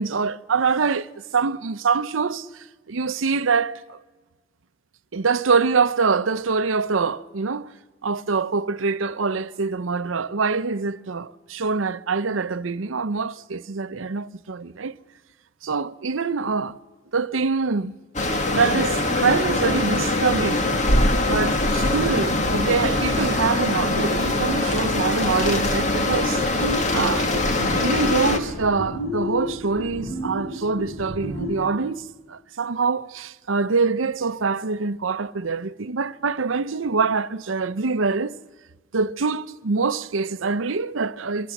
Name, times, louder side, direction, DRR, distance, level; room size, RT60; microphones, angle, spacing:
voice 1, 0.0-4.0 5.1-7.7 8.0-15.0 15.6-16.8 17.1-17.9 18.5-20.6 21.2-26.4 26.9-27.5 27.8-38.4 38.9-41.5, right 4 dB, 90° right, 0.7 m, -24 dB
sound 1, 18.1-28.4, left 2 dB, 35° left, 1.9 m, -22 dB
sound 2, 26.6-31.6, left 1 dB, 75° left, 7.5 m, -31 dB
25.5 x 23.5 x 7.2 m
head